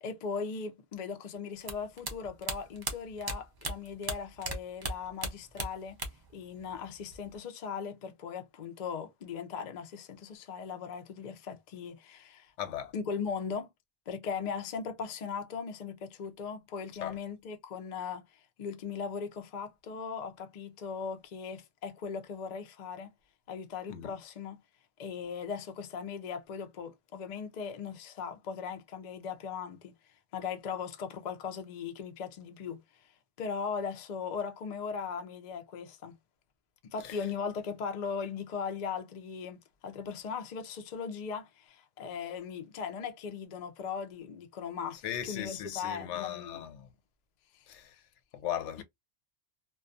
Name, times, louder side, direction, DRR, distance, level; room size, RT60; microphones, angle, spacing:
voice 1, 0.0-6.0 6.3-12.5 12.9-13.7 14.1-23.1 23.5-24.6 25.0-29.9 30.3-33.1 33.4-36.1 36.8-46.6 47.5-47.7, left 6 dB, 55° left, 0.5 m, -38 dB
sound 1, 1.6-4.6 4.8-6.3 6.6-7.4, right 2 dB, 40° right, 0.3 m, -36 dB
voice 2, 12.6-12.9 17.0-17.2 23.9-24.1 37.0-37.2 45.0-46.9 47.7-48.0 48.3-48.8, left 10 dB, 80° left, 0.9 m, -37 dB
2.3 x 2.2 x 2.5 m
omnidirectional pair, 1.2 m